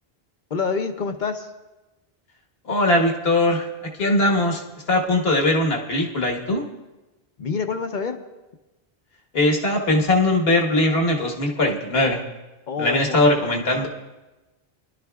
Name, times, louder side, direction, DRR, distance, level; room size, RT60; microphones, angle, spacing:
voice 1, 0.5-1.5 7.4-8.2 12.7-13.9, left 5 dB, 50° left, 6 dB, 0.9 m, -28 dB
voice 2, 2.6-3.7 4.0-4.6 4.9-6.6 9.3-12.2 12.8-13.9, left 1 dB, 70° left, 1 dB, 1.7 m, -20 dB
24.0 x 12.0 x 2.4 m, 1.1 s
omnidirectional pair, 1.1 m